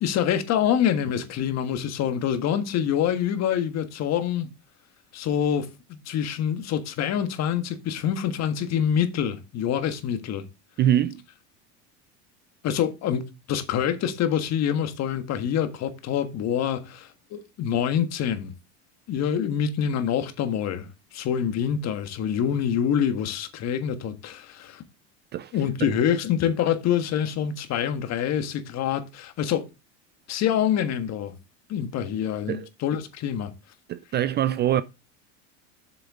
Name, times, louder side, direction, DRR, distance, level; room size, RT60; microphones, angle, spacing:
voice 1, 0.0-4.5 5.1-10.5 12.6-13.2 13.5-18.5 19.1-24.8 25.5-29.7 30.3-31.4 31.7-33.5, left 9 dB, 45° left, 1.5 m, -26 dB
voice 2, 10.8-11.2 25.3-25.5 25.8-25.9 32.5-32.7 33.9-34.8, right 11 dB, 30° right, 0.4 m, -23 dB
7.7 x 6.7 x 3.7 m
supercardioid pair, 105°, 36 cm